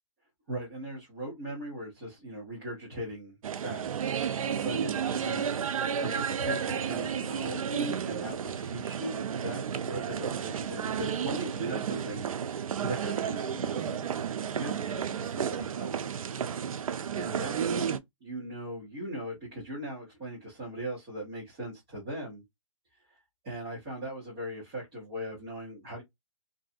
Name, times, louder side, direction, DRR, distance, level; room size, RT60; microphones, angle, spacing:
voice 1, 0.5-4.1 4.6-5.5 6.0-14.2 14.6-16.1 17.1-22.4 23.1-23.2 23.4-26.0, right 1 dB, 20° right, 1.0 m, -39 dB
sound 1, 3.4-18.0, right 7 dB, 90° right, 0.4 m, -32 dB
2.6 x 2.3 x 2.5 m
hypercardioid pair, 175°, 17 cm